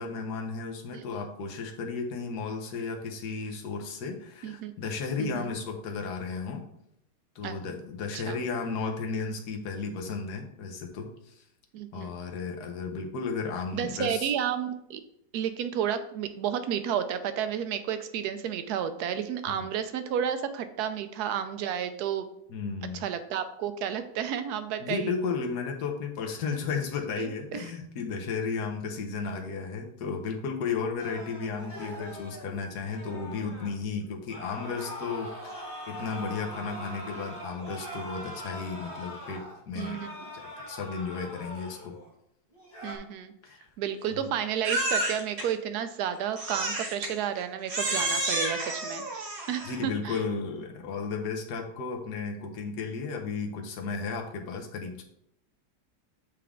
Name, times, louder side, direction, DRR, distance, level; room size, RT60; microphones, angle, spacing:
voice 1, 0.0-6.6 7.3-11.4 11.9-14.3 19.6-19.7 22.5-23.1 24.8-40.0 40.7-42.0 43.4-43.7 44.1-44.2 49.6-55.0, left 5 dB, 65° left, 3 dB, 1.4 m, -34 dB
voice 2, 5.2-5.5 7.4-7.5 8.1-8.4 11.7-12.1 13.7-15.0 15.3-22.3 23.0-25.1 27.2-27.7 39.8-40.3 42.8-43.3 43.8-50.2, right 9 dB, 70° right, 10 dB, 1.1 m, -32 dB
sound 1, 31.0-33.7 34.3-42.1 42.5-43.0, equal, 15° left, 1.2 m, -42 dB
Crying sobbing, 44.6-45.5 46.4-47.1 47.7-49.8, right 2 dB, 40° right, 1.2 m, -30 dB
8.4 x 3.4 x 3.6 m, 0.76 s
omnidirectional pair, 1.9 m